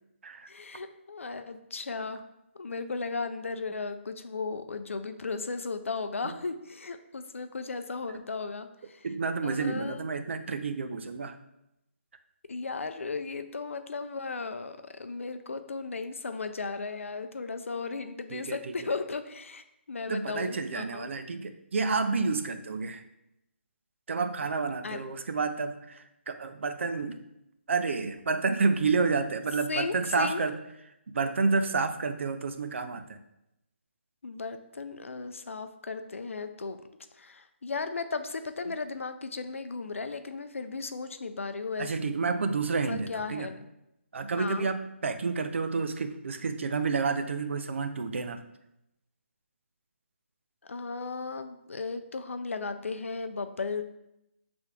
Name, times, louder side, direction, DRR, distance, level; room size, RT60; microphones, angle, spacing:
voice 1, 0.5-2.2 2.5-9.1 9.4-10.1 12.5-21.1 24.8-25.0 29.7-30.4 34.2-36.8 37.2-41.9 42.9-43.6 44.4-44.7 50.6-53.8, left 4 dB, 75° left, 9 dB, 0.4 m, -36 dB
voice 2, 9.0-11.4 18.3-18.9 20.1-23.0 24.1-27.2 27.7-30.6 31.1-33.2 41.8-43.5 44.1-48.4, right 4 dB, 65° right, 8 dB, 0.4 m, -30 dB
6.6 x 3.4 x 2.3 m, 0.85 s
figure-of-eight pair, 150°, 7 cm